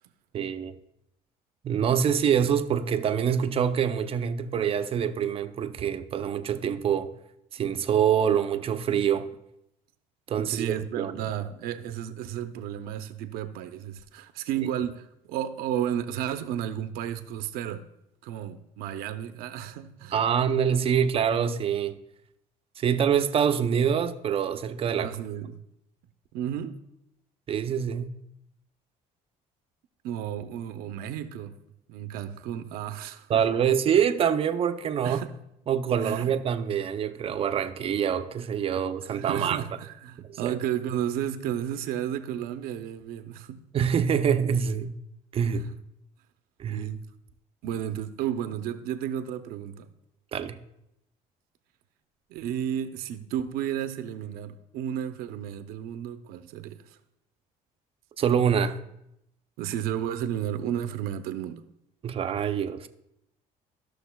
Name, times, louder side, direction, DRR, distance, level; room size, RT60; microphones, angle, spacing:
voice 1, 0.3-0.7 1.6-7.1 7.5-9.3 10.3-11.1 20.1-22.0 22.8-25.1 27.5-28.1 33.3-35.2 35.7-39.6 40.3-40.5 43.7-45.0 45.3-45.7 46.6-46.9 50.3-50.6 58.2-58.8 62.0-62.9, right 8 dB, 40° right, 0.5 m, -25 dB
voice 2, 10.4-17.8 18.2-20.3 25.0-25.6 26.3-26.8 30.0-31.6 31.9-33.5 35.0-35.3 36.0-36.3 39.1-43.6 45.6-45.7 46.7-47.0 47.6-49.9 52.3-57.0 59.6-61.6, right 10 dB, 85° right, 0.6 m, -33 dB
13.5 x 6.4 x 2.2 m
cardioid pair, 125°, 15 cm